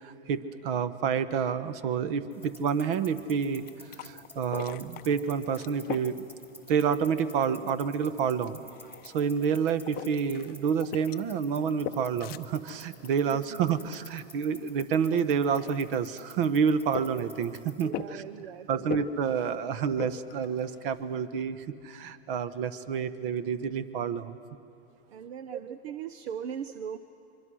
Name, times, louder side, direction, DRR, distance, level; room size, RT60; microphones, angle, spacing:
voice 1, 0.0-3.6 4.0-6.3 6.7-8.6 9.0-18.2 18.7-24.4 25.5-25.8, right 7 dB, 55° right, 13 dB, 1.2 m, -29 dB
sound 1, 2.3-17.9, left 1 dB, 5° right, 2.5 m, -52 dB
sound 2, 3.4-21.3, left 12 dB, 30° left, 0.6 m, -44 dB
voice 2, 13.3-13.9 17.8-19.1 25.1-27.0, right 8 dB, 70° right, 11 dB, 0.9 m, -40 dB
25.0 x 23.5 x 6.4 m, 2.7 s
hypercardioid pair, 120°, 33 cm